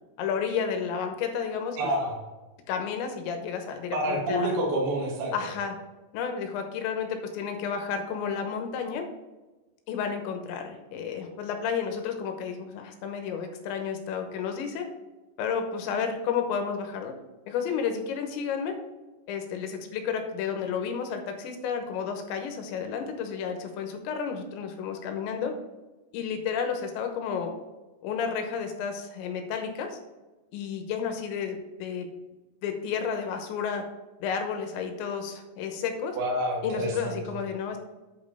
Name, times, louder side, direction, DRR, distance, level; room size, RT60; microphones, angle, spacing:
voice 1, 0.2-1.9 2.7-4.6 5.3-5.8 6.1-9.0 9.9-14.8 15.4-17.1 17.5-18.7 19.3-25.5 26.1-27.5 28.0-30.0 30.5-32.1 32.6-33.8 34.2-36.2 36.6-37.8, left 6 dB, 85° left, 5 dB, 3.3 m, -31 dB
voice 2, 1.8-2.1 3.9-5.3 36.2-37.1, right 1 dB, 45° right, -2 dB, 1.9 m, -28 dB
8.4 x 5.4 x 4.9 m, 1.2 s
omnidirectional pair, 5.1 m